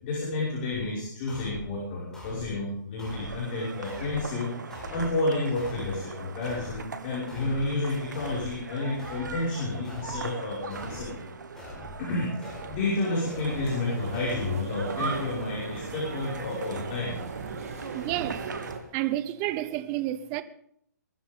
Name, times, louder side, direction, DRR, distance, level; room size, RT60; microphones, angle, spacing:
voice 1, 0.0-11.3 12.0-17.2, left 2 dB, 35° left, 5.8 m, -30 dB
sound 1, 1.3-1.7 2.1-2.5 3.0-3.4 3.8-4.3 4.7-5.1 5.6-6.0 6.4-6.8 7.3-7.7 8.1-8.6 9.0-9.4 9.8-10.3 10.7-11.1 11.6-12.0 12.4-12.8 13.3-13.7 14.1-14.5 15.0-15.3, left 1 dB, 5° left, 4.7 m, -42 dB
sound 2, 3.1-18.7, right 5 dB, 80° right, 1.8 m, -41 dB
sound 3, 13.5-18.8, right 4 dB, 55° right, 3.0 m, -38 dB
voice 2, 17.9-18.4 18.9-20.4, right 14 dB, 25° right, 0.8 m, -30 dB
22.5 x 14.0 x 3.8 m
hypercardioid pair, 155°, 10 cm